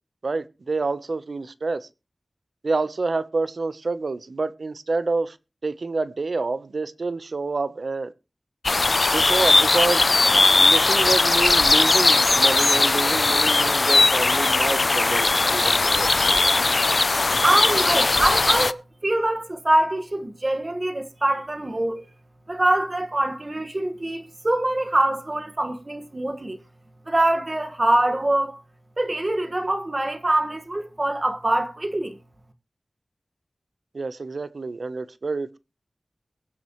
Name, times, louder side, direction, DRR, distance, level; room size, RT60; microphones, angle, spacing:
voice 1, 0.2-1.9 2.6-5.4 5.6-8.1 9.1-10.1 10.6-16.1 33.9-35.6, right 3 dB, 75° right, 0.9 m, -28 dB
sound 1, 8.6-18.7, left 3 dB, 55° left, 0.5 m, -19 dB
voice 2, 17.4-22.1 22.5-26.6 27.1-28.6 29.0-32.2, right 1 dB, 35° right, 1.6 m, -24 dB
22.5 x 7.5 x 3.1 m
wide cardioid pair, 80°, 0 cm